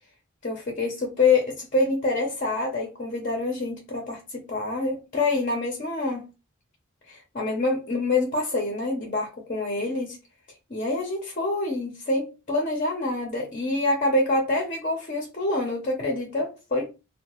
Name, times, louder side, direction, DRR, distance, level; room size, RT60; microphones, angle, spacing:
voice 1, 0.4-6.2 7.1-10.2 10.7-16.9, left 2 dB, 35° left, 0.6 m, -26 dB
2.7 x 2.1 x 2.9 m
head